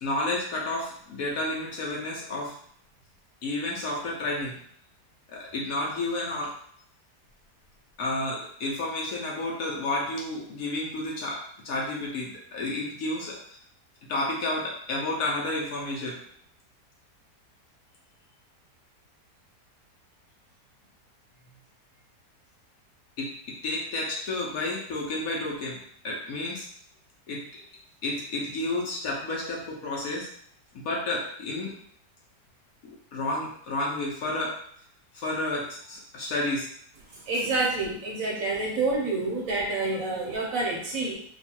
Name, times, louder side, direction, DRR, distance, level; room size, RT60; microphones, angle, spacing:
voice 1, 0.0-2.5 3.4-4.6 5.3-6.5 8.0-13.6 14.1-16.2 23.2-23.3 23.6-25.8 26.0-26.7 27.3-27.4 28.0-30.3 30.7-31.7 33.1-34.5 35.1-36.7, left 2 dB, 65° left, -3 dB, 1.1 m, -31 dB
voice 2, 37.3-41.1, right 3 dB, 60° right, -2 dB, 1.1 m, -28 dB
3.0 x 2.3 x 4.3 m, 0.65 s
omnidirectional pair, 1.8 m